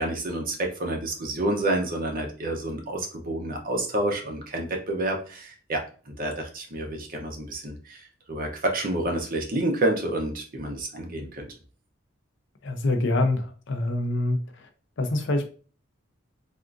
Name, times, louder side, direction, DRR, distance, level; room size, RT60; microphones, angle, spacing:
voice 1, 0.0-11.5, right 1 dB, 45° right, 2 dB, 0.7 m, -29 dB
voice 2, 12.6-14.4 15.0-15.5, left 2 dB, 60° left, 6 dB, 0.5 m, -25 dB
3.5 x 2.4 x 2.4 m, 0.38 s
head